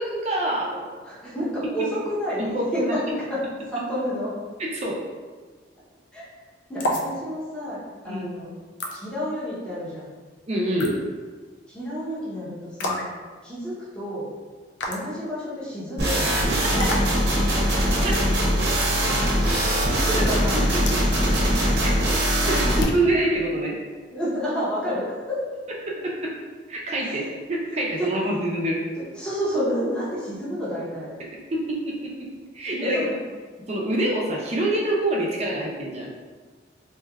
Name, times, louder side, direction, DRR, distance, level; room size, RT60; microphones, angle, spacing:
voice 1, 0.0-0.9 2.4-3.0 4.6-5.0 8.0-8.3 10.5-11.0 18.0-18.1 20.5-20.6 21.8-21.9 22.5-23.8 25.9-26.3 26.7-28.8 31.2-32.3 32.5-33.0 33.7-36.1, right 1 dB, 35° right, -3 dB, 0.5 m, -26 dB
voice 2, 1.0-4.3 6.1-6.3 6.7-8.5 8.9-10.1 11.7-13.1 13.4-14.3 14.9-16.4 16.7-16.9 17.6-17.7 19.9-20.6 24.1-25.4 27.0-27.3 28.0-28.4 29.2-31.1 32.8-33.1, equal, 5° left, -9 dB, 0.8 m, -30 dB
sound 1, 6.8-7.1 8.8-9.0 10.8-11.0 12.8-13.1 14.8-15.1 16.8-17.1 18.8-19.0 20.9-21.0 22.8-23.1, left 1 dB, 80° left, 0.4 m, -27 dB
sound 2, 16.0-22.8, equal, 60° right, 0.8 m, -21 dB
3.3 x 2.7 x 2.3 m, 1.4 s
head